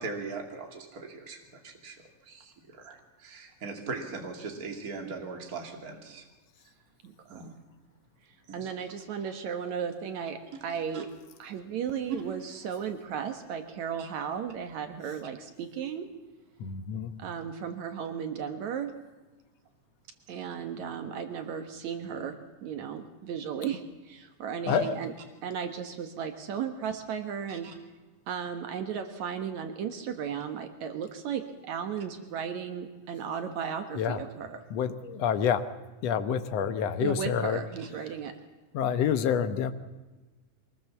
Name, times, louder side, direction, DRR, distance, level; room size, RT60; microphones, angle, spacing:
voice 1, 0.0-6.2 7.3-7.6 8.5-8.7 10.9-11.0 14.0-14.1 17.1-17.3 24.7-24.8 27.5-27.7, right 4 dB, 30° right, 3 dB, 2.8 m, -40 dB
voice 2, 7.0-7.5 8.5-11.1 11.4-16.1 17.2-18.9 20.3-25.1 25.4-27.7 28.3-34.6 37.0-38.3, right 7 dB, 70° right, 7 dB, 2.6 m, -35 dB
voice 3, 16.6-17.1 24.7-25.0 34.0-34.2 34.7-35.6 36.0-37.6 38.7-39.7, left 8 dB, 65° left, 10 dB, 2.0 m, -27 dB
23.5 x 20.0 x 7.2 m, 1.2 s
omnidirectional pair, 3.4 m